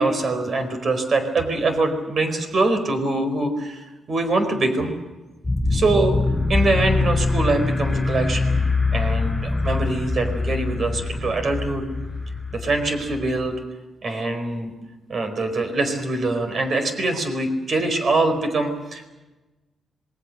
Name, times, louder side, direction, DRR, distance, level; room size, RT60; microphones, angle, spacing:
voice 1, 0.0-4.9 5.7-6.1 6.5-8.5 8.9-11.9 12.5-13.5 14.0-14.7 15.1-19.1, right 2 dB, 45° right, 7 dB, 4.6 m, -23 dB
sound 1, 5.4-13.5, left 3 dB, 10° left, 4.3 m, -24 dB
27.0 x 21.5 x 6.6 m, 1.1 s
wide cardioid pair, 145°, 0 cm